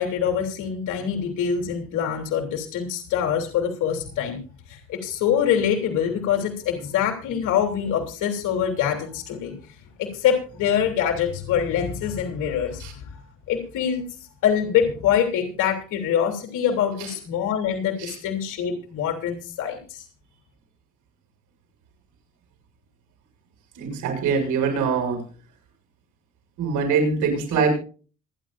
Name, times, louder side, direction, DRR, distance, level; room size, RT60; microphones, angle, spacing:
voice 1, 0.0-4.4 4.7-14.1 14.4-20.1, left 8 dB, 85° left, 2 dB, 3.3 m, -25 dB
voice 2, 23.8-25.2 26.6-27.7, right 5 dB, 90° right, 3 dB, 6.8 m, -23 dB
26.0 x 10.0 x 2.6 m, 0.38 s
cardioid pair, 90°, 30 cm